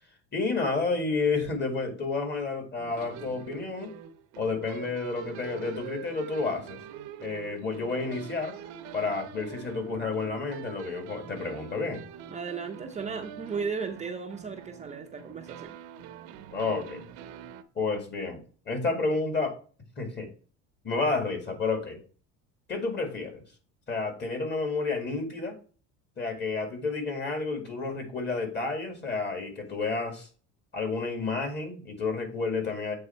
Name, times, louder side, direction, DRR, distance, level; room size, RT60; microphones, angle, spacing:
voice 1, 0.3-3.9 4.4-6.8 7.2-8.5 8.9-12.0 16.5-17.0 17.8-19.5 20.0-20.3 20.8-22.0 22.7-23.4 23.9-25.5 26.2-30.3 30.7-32.9, left 3 dB, 35° left, 5 dB, 2.2 m, -30 dB
sound 1, 2.8-17.6, right 9 dB, 75° right, 0.8 m, -44 dB
voice 2, 12.3-15.8, right 5 dB, 20° right, 3 dB, 0.6 m, -35 dB
7.9 x 3.4 x 4.4 m, 0.39 s
cardioid pair, 115°, 32 cm